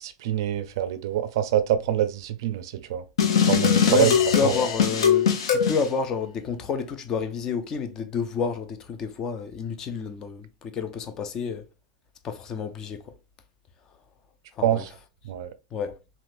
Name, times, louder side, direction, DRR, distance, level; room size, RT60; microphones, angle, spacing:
voice 1, 0.0-3.0 3.5-4.1 4.4-4.5 14.6-14.9 15.2-15.5, right 11 dB, 50° right, 0.4 m, -25 dB
sound 1, 3.2-5.8, left 7 dB, 80° left, 0.9 m, -21 dB
voice 2, 3.9-11.7 12.2-13.1 14.6-14.8 15.7-16.0, left 5 dB, 20° left, 0.3 m, -29 dB
3.4 x 2.8 x 2.5 m
supercardioid pair, 170°, 3 cm